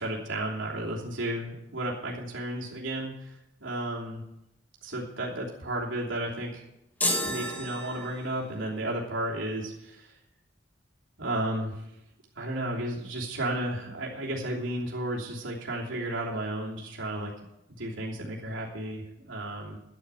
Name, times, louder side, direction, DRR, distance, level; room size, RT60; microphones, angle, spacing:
voice 1, 0.0-3.3 3.6-4.2 4.8-6.6 7.2-10.1 11.2-11.8 12.4-17.3 17.8-19.8, right 1 dB, 80° right, -4 dB, 3.1 m, -33 dB
sound 1, 7.0-8.6, left 1 dB, 10° left, 1.5 m, -31 dB
12.0 x 9.1 x 8.3 m, 0.87 s
head